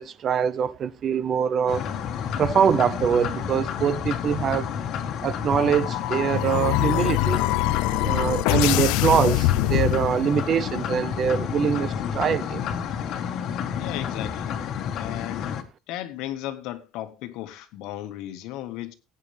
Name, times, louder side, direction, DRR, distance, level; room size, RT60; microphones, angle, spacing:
voice 1, 0.0-1.9 2.4-4.7 5.2-7.4 8.0-12.6, right 8 dB, 30° right, 0.6 m, -24 dB
sound 1, 1.7-15.6, left 8 dB, 45° left, 1.5 m, -30 dB
sound 2, 5.5-10.5, left 17 dB, 80° left, 0.6 m, -24 dB
voice 2, 13.8-15.6 15.9-18.9, left 14 dB, 65° left, 1.4 m, -35 dB
17.5 x 9.1 x 3.4 m
cardioid pair, 170°, 0 cm